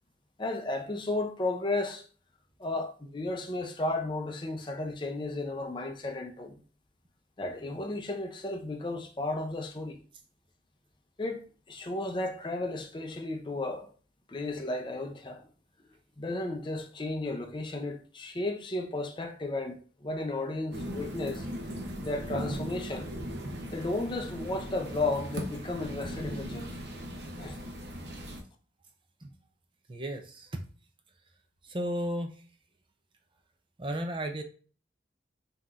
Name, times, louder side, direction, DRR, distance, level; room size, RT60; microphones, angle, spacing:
voice 1, 0.4-2.0 2.6-6.6 7.4-10.0 11.2-13.9 14.3-15.4 16.2-21.5 22.0-23.1 23.7-26.8 27.4-27.6, left 2 dB, 25° left, 0.5 m, -34 dB
sound 1, 20.7-28.4, equal, 70° right, 0.8 m, -38 dB
voice 2, 29.9-30.6 31.6-32.4 33.8-34.4, right 1 dB, 30° right, 0.5 m, -34 dB
5.8 x 2.8 x 2.5 m
head